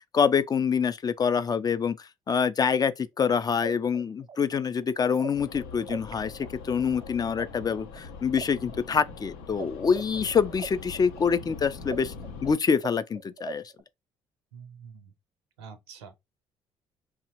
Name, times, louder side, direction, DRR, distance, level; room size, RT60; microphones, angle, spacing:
voice 1, 0.1-2.0 2.3-12.1 12.4-13.6, left 6 dB, 30° left, 0.3 m, -26 dB
sound 1, 3.6-6.1 6.4-9.6 9.9-13.8, right 7 dB, 40° right, 0.5 m, -41 dB
sound 2, 5.3-12.6, left 4 dB, 80° left, 0.5 m, -42 dB
voice 2, 14.5-15.1 15.6-16.2, right 6 dB, 85° right, 0.6 m, -46 dB
2.8 x 2.0 x 2.8 m
hypercardioid pair, 50°, 13 cm